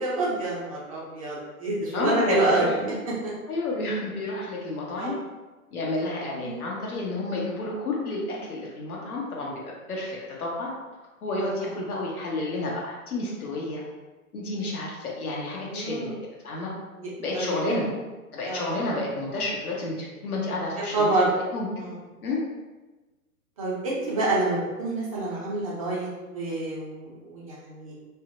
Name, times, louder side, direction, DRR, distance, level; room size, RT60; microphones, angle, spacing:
voice 1, 0.0-2.9 4.9-5.1 6.4-6.6 15.7-16.1 17.0-17.8 18.4-18.7 20.9-21.3 21.8-21.9 23.6-27.9, right 2 dB, 25° right, -6 dB, 0.4 m, -28 dB
voice 2, 1.9-2.7 3.5-5.1 5.7-10.7 11.2-13.8 14.3-16.1 16.4-16.7 17.2-17.9 18.3-21.7 22.2-22.4, left 2 dB, 75° left, -3 dB, 0.8 m, -30 dB
2.6 x 2.1 x 2.5 m, 1.2 s
figure-of-eight pair, 115°, 45 cm